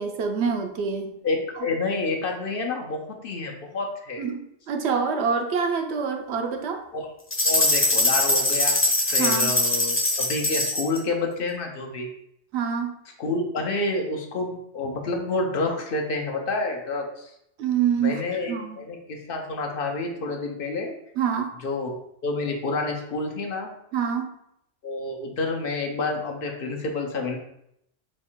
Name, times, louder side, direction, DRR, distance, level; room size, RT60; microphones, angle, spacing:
voice 1, 0.0-1.2 1.6-1.7 4.2-6.8 9.2-9.5 12.5-13.0 17.6-18.2 18.5-18.8 21.2-21.5 23.9-24.3, right 6 dB, 70° right, 5 dB, 0.8 m, -26 dB
voice 2, 1.2-4.3 6.9-7.1 7.4-8.8 9.1-12.1 13.2-17.3 18.0-20.9 21.6-23.7 24.8-27.4, left 3 dB, 60° left, 1 dB, 0.7 m, -29 dB
sound 1, 7.3-11.0, left 1 dB, 15° left, 0.5 m, -22 dB
4.2 x 2.4 x 4.4 m, 0.76 s
omnidirectional pair, 1.2 m